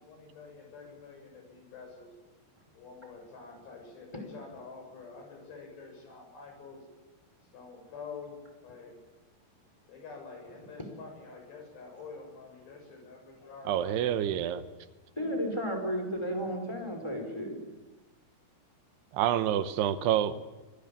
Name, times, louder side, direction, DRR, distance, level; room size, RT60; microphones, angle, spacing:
voice 1, 0.0-2.1 2.7-6.9 7.5-9.0 9.9-14.7, left 4 dB, 85° left, 3 dB, 9.0 m, -47 dB
voice 2, 13.7-14.6 19.1-20.4, right 10 dB, 85° right, 12 dB, 3.1 m, -27 dB
voice 3, 15.2-17.6, equal, 5° left, 3 dB, 4.8 m, -33 dB
25.0 x 19.0 x 8.7 m, 1.2 s
omnidirectional pair, 4.7 m